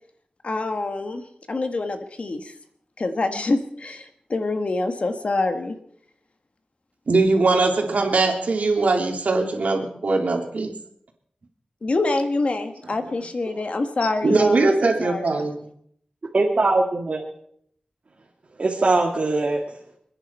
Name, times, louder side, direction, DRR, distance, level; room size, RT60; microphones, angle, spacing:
voice 1, 0.4-1.2 1.5-2.5 3.0-5.8 11.8-15.3, left 2 dB, 55° left, 7 dB, 1.6 m, -26 dB
voice 2, 7.1-10.7 14.2-15.7, right 3 dB, 80° right, 2 dB, 2.9 m, -21 dB
voice 3, 16.3-17.2 18.6-19.8, right 2 dB, 55° right, -1 dB, 2.1 m, -21 dB
27.5 x 10.0 x 4.4 m, 0.67 s
wide cardioid pair, 85°, 3 cm